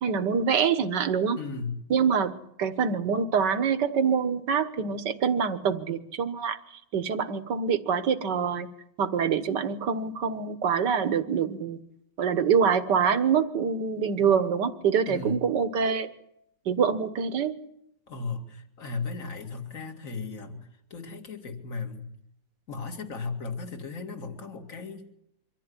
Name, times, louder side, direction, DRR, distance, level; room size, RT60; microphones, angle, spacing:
voice 1, 0.0-1.4 1.9-6.6 6.9-8.7 9.0-11.8 12.2-16.1 16.7-17.5, right 6 dB, 65° right, 11 dB, 1.9 m, -25 dB
voice 2, 1.4-1.8 15.1-15.4 18.1-22.1 22.7-25.1, left 4 dB, 45° left, 5 dB, 2.6 m, -36 dB
24.5 x 14.5 x 9.8 m, 0.77 s
omnidirectional pair, 2.1 m